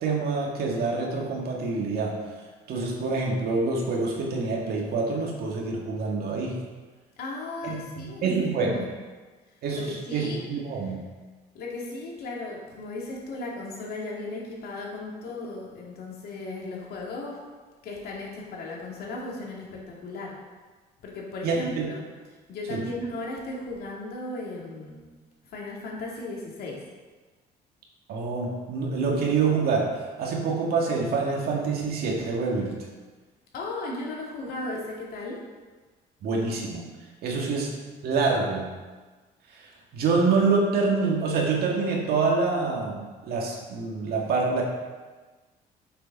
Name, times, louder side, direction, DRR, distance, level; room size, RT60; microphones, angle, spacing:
voice 1, 0.0-2.2 2.7-6.6 7.6-8.8 9.6-11.0 21.4-21.8 22.7-22.8 28.1-29.9 30.2-32.8 36.2-36.9 37.2-37.7 38.0-38.7 39.9-44.6, right 4 dB, 65° right, -1 dB, 1.9 m, -26 dB
voice 2, 7.2-8.9 9.7-10.4 11.5-17.4 17.8-20.3 21.0-22.0 22.5-25.1 25.5-26.8 33.5-35.4, left 2 dB, 65° left, -3 dB, 2.6 m, -36 dB
7.7 x 6.7 x 5.4 m, 1.3 s
cardioid pair, 110°, 17 cm